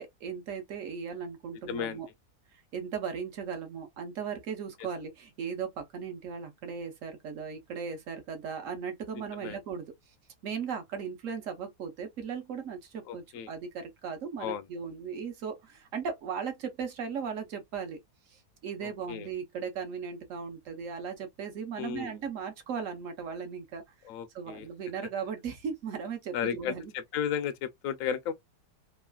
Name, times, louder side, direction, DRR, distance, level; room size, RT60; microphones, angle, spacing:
voice 1, 0.0-2.1 2.7-9.9 10.4-18.0 18.3-23.8 24.3-26.9, right 6 dB, 60° right, 1.1 m, -37 dB
voice 2, 1.7-2.0 9.4-9.6 13.1-13.5 14.4-14.6 18.8-19.3 21.8-22.2 24.0-24.7 26.3-28.3, left 8 dB, 70° left, 0.8 m, -34 dB
3.1 x 2.4 x 2.2 m
omnidirectional pair, 1.8 m